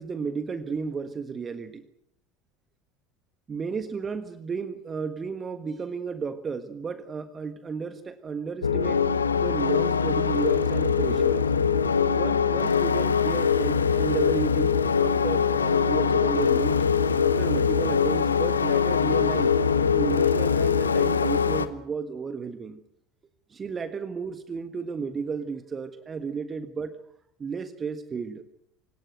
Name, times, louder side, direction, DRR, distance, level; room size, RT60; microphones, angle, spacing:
voice 1, 0.0-1.8 3.5-9.0 9.3-11.4 12.1-14.7 15.0-16.8 17.2-19.5 19.9-22.8 23.5-27.0 27.4-28.4, right 5 dB, 25° right, 11 dB, 1.5 m, -33 dB
sound 1, 8.6-21.7, left 6 dB, 80° left, 1.1 m, -23 dB
28.0 x 17.5 x 7.9 m, 0.75 s
figure-of-eight pair, 70°, 0 cm